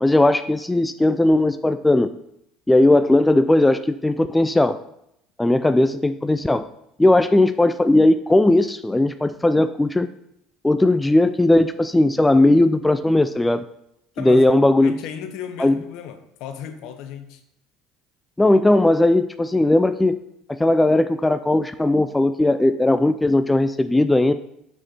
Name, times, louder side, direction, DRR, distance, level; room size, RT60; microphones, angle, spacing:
voice 1, 0.0-2.1 2.7-4.8 5.4-6.6 7.0-10.1 10.6-13.6 14.2-14.9 15.6-15.7 18.4-20.2 20.5-24.3, left 2 dB, 10° left, 10 dB, 0.4 m, -17 dB
voice 2, 14.1-14.5 14.8-17.4, left 8 dB, 65° left, 8 dB, 0.9 m, -35 dB
6.4 x 6.2 x 4.2 m, 0.77 s
hypercardioid pair, 70°, 0 cm